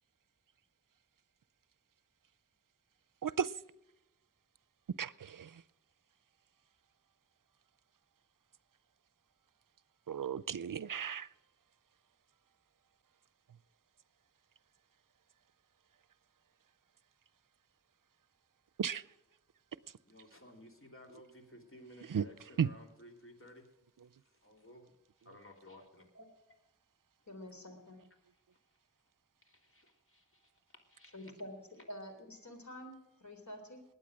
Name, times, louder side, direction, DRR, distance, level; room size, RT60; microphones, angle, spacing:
voice 1, 3.2-3.5 5.0-5.6 10.1-11.3 18.8-19.0 22.1-22.2 22.6-22.7, right 7 dB, 80° right, 19 dB, 0.6 m, -34 dB
voice 2, 20.0-23.7 24.1-26.1 26.5-26.6 28.3-29.1 29.4-31.3, left 1 dB, 40° left, 3 dB, 3.2 m, -57 dB
voice 3, 27.3-28.0 31.1-31.5 31.9-33.8, equal, 60° left, 5 dB, 3.7 m, -48 dB
20.5 x 9.1 x 6.2 m, 0.90 s
wide cardioid pair, 55°, 32 cm